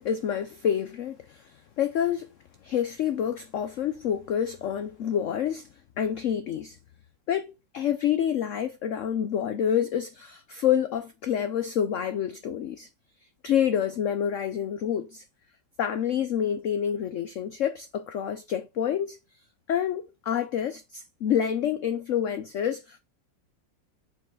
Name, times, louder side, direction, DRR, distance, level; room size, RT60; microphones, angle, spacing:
voice 1, 0.0-2.3 2.6-5.7 6.0-6.8 7.3-12.9 13.4-15.2 15.8-19.2 19.7-23.0, left 9 dB, 70° left, 0.7 m, -28 dB
5.8 x 5.5 x 5.3 m
omnidirectional pair, 2.0 m